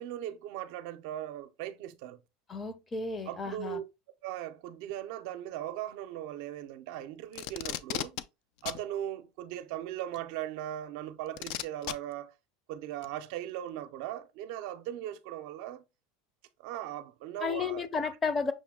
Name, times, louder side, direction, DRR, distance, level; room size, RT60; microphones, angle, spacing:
voice 1, 0.0-2.2 3.3-3.8 4.2-8.2 8.6-12.3 12.7-15.8 16.6-18.1, right 12 dB, 65° right, 0.5 m, -39 dB
voice 2, 2.5-3.8 17.4-18.5, left 5 dB, 20° left, 0.6 m, -32 dB
Packing tape duct tape, 7.3-8.2 8.7-8.8 10.1-10.2 11.4-11.9 13.0-13.1, left 12 dB, 60° left, 0.4 m, -35 dB
6.3 x 2.2 x 3.6 m
supercardioid pair, 130°, 0 cm